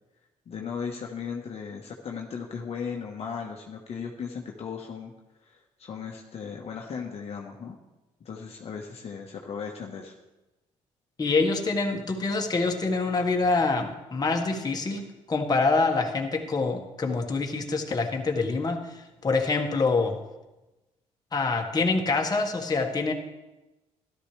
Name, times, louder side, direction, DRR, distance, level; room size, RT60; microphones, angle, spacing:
voice 1, 0.5-5.1 5.4-7.8 8.2-10.1, left 6 dB, 50° left, 0 dB, 1.3 m, -36 dB
voice 2, 11.2-20.2 21.3-23.1, left 3 dB, 30° left, 2 dB, 1.6 m, -26 dB
13.0 x 12.0 x 3.3 m, 1.0 s
supercardioid pair, 75°, 13 cm